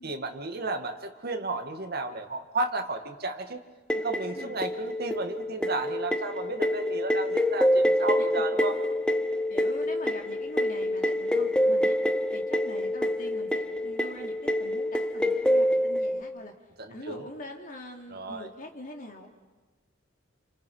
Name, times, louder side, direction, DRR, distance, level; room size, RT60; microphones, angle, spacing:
voice 1, 0.0-3.6 4.0-8.8 16.8-17.3 18.1-18.5, right 2 dB, 55° right, 5 dB, 2.1 m, -33 dB
sound 1, 3.9-16.2, equal, 5° left, 0.8 m, -27 dB
voice 2, 9.5-12.0 12.3-16.5 16.9-19.3, left 1 dB, 45° left, 2 dB, 3.1 m, -43 dB
29.5 x 28.0 x 5.6 m, 1.3 s
head